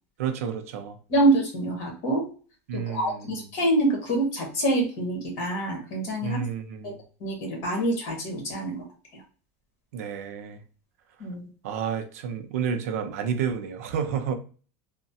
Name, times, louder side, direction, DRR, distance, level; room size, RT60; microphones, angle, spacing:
voice 1, 0.2-1.0 2.7-3.4 6.2-7.0 9.9-10.6 11.6-14.3, right 7 dB, 80° right, 0.5 m, -30 dB
voice 2, 1.1-2.3 2.7-6.4 6.8-6.9 7.2-8.8 9.1-9.2 11.2-11.5, right 1 dB, 45° left, 1.3 m, -26 dB
3.1 x 2.2 x 2.7 m
supercardioid pair, 165°, 8 cm